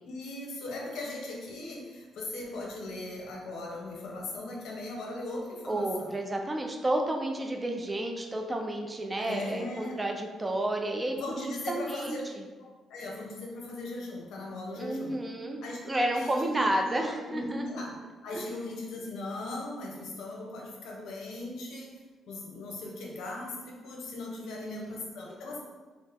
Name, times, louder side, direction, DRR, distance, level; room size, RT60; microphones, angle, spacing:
voice 1, 0.0-6.1 9.2-10.0 11.2-12.2 12.6-15.2 15.6-17.9 18.2-22.0 22.3-25.6, left 2 dB, 80° left, -2 dB, 0.8 m, -39 dB
voice 2, 5.7-12.4 14.8-17.7 18.3-18.4 24.4-25.0, right 1 dB, 20° right, 3 dB, 0.4 m, -31 dB
4.0 x 2.0 x 3.5 m, 1.3 s
cardioid pair, 90°, 0 cm